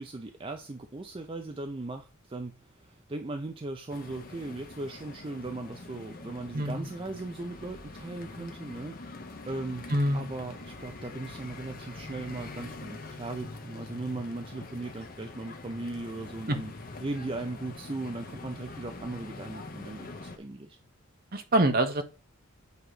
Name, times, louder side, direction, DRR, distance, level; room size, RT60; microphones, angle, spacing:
voice 1, 0.0-9.0 9.5-9.9 10.1-16.7 17.0-20.8, right 2 dB, 25° right, 6 dB, 0.4 m, -38 dB
sound 1, 3.9-20.4, left 3 dB, 40° left, 0.8 m, -44 dB
voice 2, 6.5-6.9 9.9-10.3 16.5-16.6 21.3-22.0, right 1 dB, 45° right, 7 dB, 0.9 m, -25 dB
8.0 x 3.0 x 4.8 m, 0.33 s
head